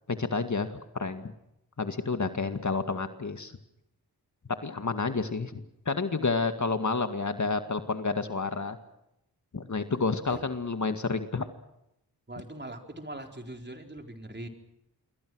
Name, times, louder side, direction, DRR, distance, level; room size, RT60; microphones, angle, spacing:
voice 1, 0.1-1.3 1.8-3.5 4.6-8.8 9.5-11.5, left 4 dB, 50° left, 8 dB, 2.1 m, -30 dB
voice 2, 12.3-14.5, right 1 dB, 25° right, 4 dB, 4.4 m, -41 dB
27.5 x 23.0 x 6.4 m, 0.82 s
cardioid pair, 55°, 39 cm